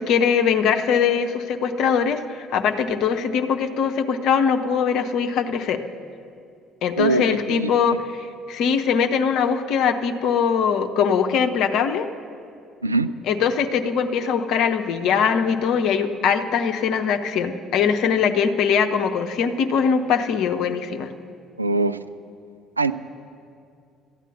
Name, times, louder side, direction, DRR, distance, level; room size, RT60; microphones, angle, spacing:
voice 1, 0.0-5.8 6.8-12.1 13.3-21.1, left 6 dB, 60° left, 7 dB, 0.8 m, -21 dB
voice 2, 7.0-7.7 12.8-13.1 21.6-22.0 22.8-22.9, right 3 dB, 90° right, 11 dB, 0.3 m, -22 dB
14.0 x 9.1 x 8.1 m, 2.4 s
figure-of-eight pair, 50°, 0 cm